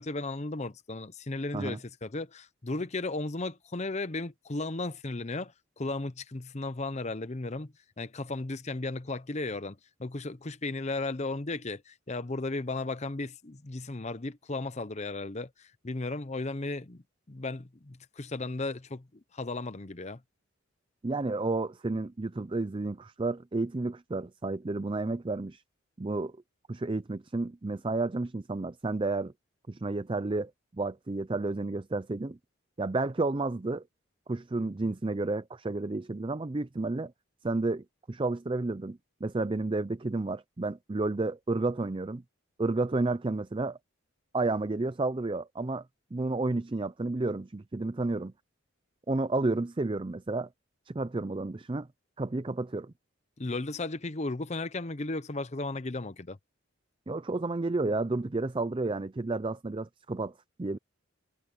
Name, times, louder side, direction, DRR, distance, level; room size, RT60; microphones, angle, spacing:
voice 1, 0.0-17.0 17.3-20.2 53.4-56.4, left 2 dB, 35° left, 0.8 m, -35 dB
voice 2, 21.0-25.6 26.0-26.3 26.7-29.3 29.7-32.4 32.8-33.8 34.3-37.1 37.4-42.2 42.6-43.8 44.3-45.9 46.1-48.3 49.1-50.5 50.9-51.9 52.2-52.9 57.1-60.3 60.6-60.8, right 2 dB, 25° right, 0.4 m, -31 dB
head